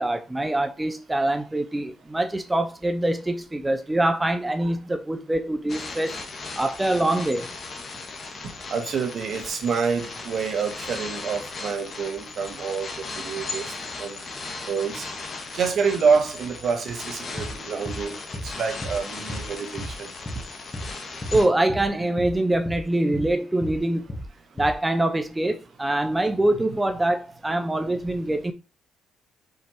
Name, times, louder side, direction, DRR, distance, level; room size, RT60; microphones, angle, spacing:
voice 1, 0.0-6.2 6.6-7.5 21.3-24.2 24.6-28.5, right 1 dB, 15° right, 0.9 m, -24 dB
sound 1, 5.7-21.5, left 3 dB, 45° left, 1.8 m, -37 dB
voice 2, 8.7-13.7 14.0-14.2 14.6-15.1 15.5-18.2 18.4-20.1, right 5 dB, 60° right, 1.7 m, -27 dB
sound 2, 17.4-17.5 17.9-18.0 18.3-18.5 18.8-19.0 19.3-19.5 19.8-19.9 20.2-20.4 20.7-20.9 21.2-21.4 21.7-21.9 22.2-22.3 22.7-22.8 23.1-23.3 23.6-23.8 24.1-24.3 24.6-24.7, equal, 25° left, 2.6 m, -33 dB
5.7 x 4.6 x 4.5 m
cardioid pair, 90°, 0 cm